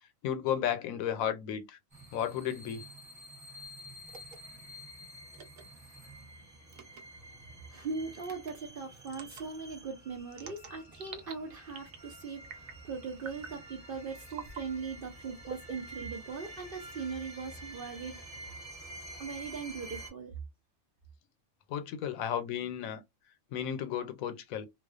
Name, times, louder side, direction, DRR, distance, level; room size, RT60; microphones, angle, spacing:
voice 1, 0.2-1.8 2.1-2.8 21.7-23.0 23.5-24.7, left 9 dB, 80° left, 1.0 m, -33 dB
sound 1, 1.9-20.1, right 1 dB, 15° right, 0.7 m, -49 dB
sound 2, 4.1-4.4 5.3-5.6 6.7-7.0 8.2-8.5 9.1-9.4 10.3-11.3 11.7-12.1 12.4-12.8 13.2-13.6 14.3-14.6 15.4-16.3, right 6 dB, 85° right, 1.1 m, -46 dB
voice 2, 7.7-18.2 19.2-20.3, right 5 dB, 60° right, 0.6 m, -40 dB
2.3 x 2.3 x 2.3 m
omnidirectional pair, 1.4 m